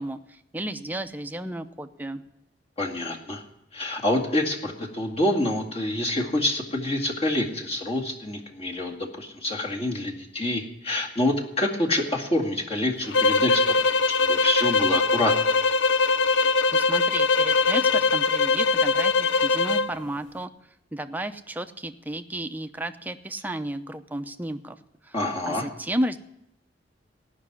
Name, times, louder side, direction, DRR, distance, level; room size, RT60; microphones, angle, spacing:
voice 1, 0.0-2.2 16.7-20.5 20.9-24.8 25.0-25.1 25.5-26.2, right 1 dB, 10° right, 8 dB, 0.7 m, -33 dB
voice 2, 2.8-3.4 3.7-15.5 25.1-25.7, left 1 dB, 35° left, 0 dB, 2.2 m, -27 dB
sound 1, 13.1-19.9, left 4 dB, 80° left, 0.7 m, -21 dB
17.5 x 6.1 x 9.7 m, 0.81 s
head